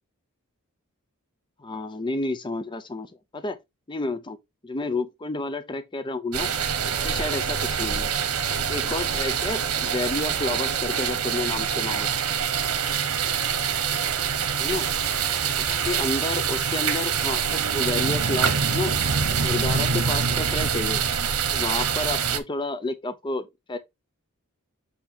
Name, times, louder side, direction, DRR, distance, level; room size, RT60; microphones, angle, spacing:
voice 1, 1.6-3.6 3.9-4.4 4.6-6.5 6.9-8.1 8.7-12.1 14.6-14.9 15.3-18.9 19.4-21.0 21.5-23.8, left 2 dB, 20° left, 0.5 m, -30 dB
sound 1, 6.3-22.4, right 7 dB, 75° right, 1.1 m, -25 dB
Water tap faucet / Sink (filling or washing), 14.5-21.6, right 6 dB, 50° right, 1.3 m, -38 dB
7.9 x 2.8 x 4.2 m
head